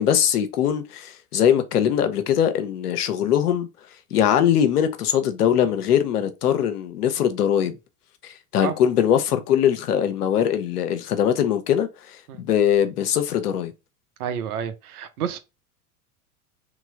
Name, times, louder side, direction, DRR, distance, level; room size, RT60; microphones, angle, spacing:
voice 1, 0.0-3.7 4.1-7.8 8.2-13.7, left 9 dB, 85° left, 0.9 m, -21 dB
voice 2, 14.2-15.4, right 8 dB, 75° right, 0.9 m, -29 dB
3.2 x 3.0 x 3.8 m
hypercardioid pair, 90°, 45 cm